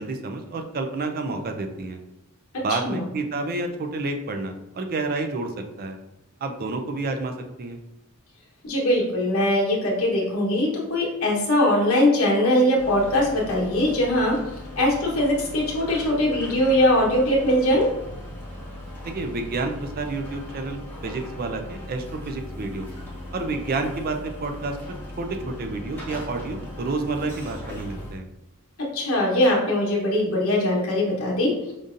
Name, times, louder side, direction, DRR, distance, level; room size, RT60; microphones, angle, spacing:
voice 1, 0.0-2.0 2.6-5.5 5.8-6.0 6.4-7.3 7.6-7.8 19.0-22.9 23.3-24.8 25.2-28.3, right 3 dB, 45° right, 6 dB, 0.4 m, -29 dB
voice 2, 8.6-14.3 14.8-17.9 28.9-31.5, left 1 dB, 70° left, -3 dB, 1.0 m, -21 dB
sound 1, 12.8-28.1, left 1 dB, 10° left, 1.0 m, -38 dB
5.2 x 2.6 x 2.5 m, 0.96 s
head